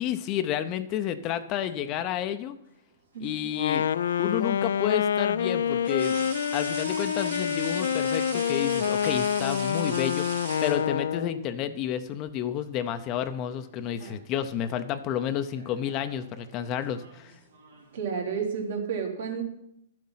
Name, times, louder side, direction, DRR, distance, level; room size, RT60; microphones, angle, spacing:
voice 1, 0.0-2.6 3.2-3.9 4.2-6.2 6.5-10.2 10.6-17.3, left 10 dB, 35° left, 10 dB, 0.6 m, -30 dB
sound 1, 1.6-2.4 4.2-4.3 5.9-11.3 12.5-12.7 13.1-13.9 14.1-14.5 15.4-18.0, right 4 dB, 85° right, 2.9 m, -42 dB
voice 2, 3.1-3.5 14.0-14.1 17.9-19.4, right 6 dB, 70° right, 1 dB, 3.0 m, -31 dB
Wind instrument woodwind instrument, 3.5-11.5, left 8 dB, 80° left, 0.4 m, -27 dB
11.5 x 7.5 x 5.7 m, 0.76 s
hypercardioid pair, 140°, 0 cm